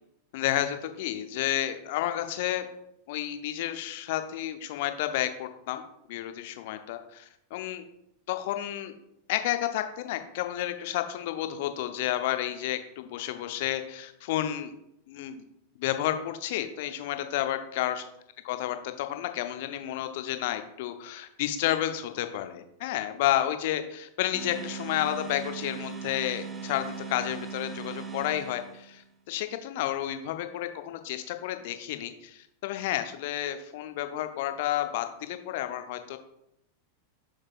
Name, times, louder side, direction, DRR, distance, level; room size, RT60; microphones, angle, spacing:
voice 1, 0.3-2.7 3.1-5.8 6.1-7.8 8.3-8.9 9.3-14.7 15.1-15.4 15.8-18.0 18.4-36.2, left 13 dB, 50° left, 8 dB, 0.7 m, -31 dB
sound 1, 24.3-29.0, right 6 dB, 15° right, 0.8 m, -39 dB
7.2 x 6.4 x 2.4 m, 0.79 s
figure-of-eight pair, 90°, 0 cm